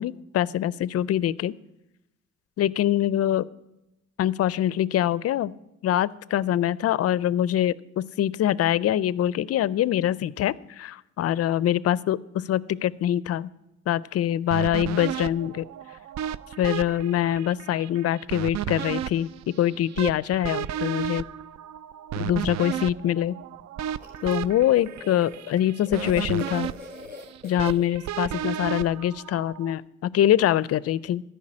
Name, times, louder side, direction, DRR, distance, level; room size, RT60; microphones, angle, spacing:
voice 1, 0.0-1.5 2.6-3.5 4.2-5.5 5.8-12.2 12.5-13.5 13.9-15.6 16.6-19.3 19.6-21.2 22.1-23.4 24.2-26.7 27.4-31.2, left 11 dB, 55° left, 21 dB, 0.5 m, -24 dB
sound 1, 14.5-29.7, right 11 dB, 65° right, 0.4 m, -34 dB
sound 2, 24.0-28.7, left 3 dB, 30° right, 4.3 m, -42 dB
13.5 x 5.6 x 8.7 m, 0.91 s
cardioid pair, 90°, 30 cm